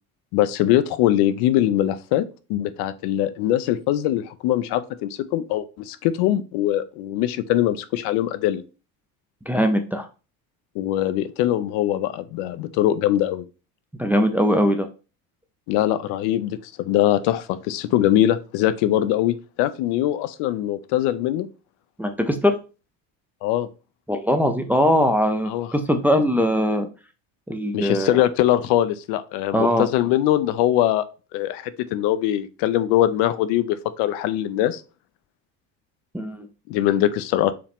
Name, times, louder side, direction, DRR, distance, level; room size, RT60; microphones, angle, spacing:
voice 1, 0.3-2.2 2.5-8.6 10.8-13.4 15.7-21.5 23.4-23.7 25.5-25.7 27.7-31.0 31.3-34.8 36.7-37.5, left 13 dB, 70° left, 13 dB, 0.6 m, -22 dB
voice 2, 9.5-10.1 14.0-14.9 22.0-22.6 24.1-26.9 27.5-28.2 29.5-29.9 36.1-36.5, equal, 5° right, 5 dB, 0.4 m, -21 dB
4.9 x 3.0 x 3.5 m, 0.32 s
supercardioid pair, 105°, 41 cm